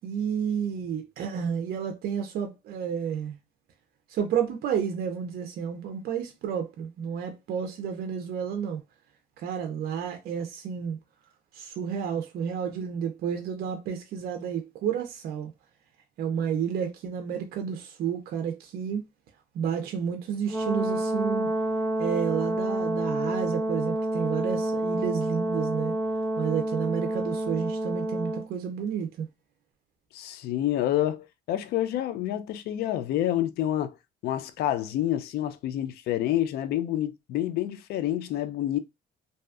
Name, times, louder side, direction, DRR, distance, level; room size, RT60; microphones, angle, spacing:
voice 1, 0.0-3.4 4.1-8.8 9.4-11.0 11.5-15.5 16.2-19.0 19.5-21.5 22.0-26.0 26.4-29.3, right 7 dB, 65° right, 0.5 m, -31 dB
Brass instrument, 20.5-28.5, right 1 dB, 10° left, 0.7 m, -28 dB
voice 2, 30.1-34.0 34.2-38.8, left 12 dB, 70° left, 0.4 m, -28 dB
2.6 x 2.3 x 2.3 m
cardioid pair, 110°, 17 cm